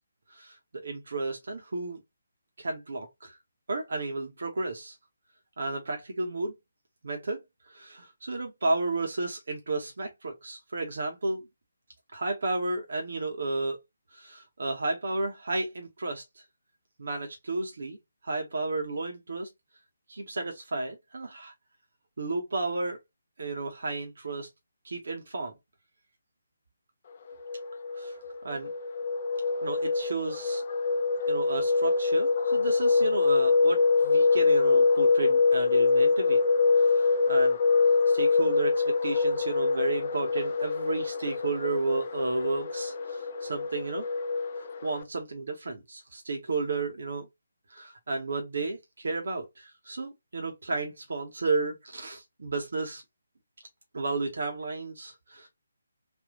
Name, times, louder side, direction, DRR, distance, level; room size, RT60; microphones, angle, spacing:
voice 1, 0.3-2.0 2.6-3.4 3.7-4.9 5.6-6.5 7.0-7.4 7.7-11.4 12.1-13.8 14.1-16.2 17.0-18.0 18.2-19.5 20.1-21.5 22.2-23.0 23.4-24.5 24.8-25.5 27.9-28.1 28.4-28.7 29.6-30.6 31.3-36.4 36.8-37.6 38.1-44.0 44.8-47.3 47.7-53.0 53.9-55.5, right 3 dB, 55° right, 1.1 m, -32 dB
sound 1, 27.3-45.0, left 4 dB, 40° left, 0.5 m, -25 dB
3.5 x 2.6 x 3.8 m
figure-of-eight pair, 145°, 0 cm